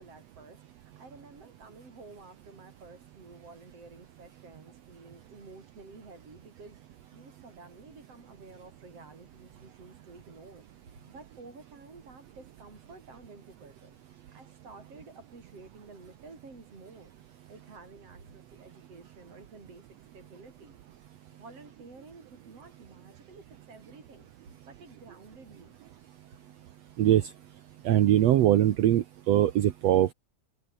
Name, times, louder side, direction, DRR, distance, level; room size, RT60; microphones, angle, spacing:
voice 1, 0.0-10.7 11.0-14.0 14.3-17.1 17.5-19.9 20.1-20.8 21.3-24.3 24.7-25.8, right 3 dB, 50° right, 7.0 m, -51 dB
voice 2, 27.9-30.1, right 12 dB, 65° right, 2.0 m, -22 dB
omnidirectional pair, 3.4 m